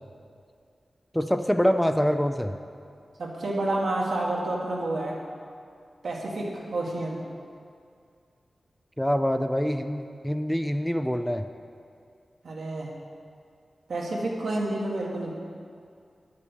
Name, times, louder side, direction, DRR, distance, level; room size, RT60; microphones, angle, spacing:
voice 1, 1.1-2.5 9.0-11.4, equal, 5° left, 8 dB, 0.4 m, -25 dB
voice 2, 3.2-5.1 6.0-7.2 12.4-12.9 13.9-15.3, right 2 dB, 80° right, -2 dB, 1.5 m, -29 dB
9.2 x 6.0 x 6.3 m, 2.3 s
wide cardioid pair, 80°, 0 cm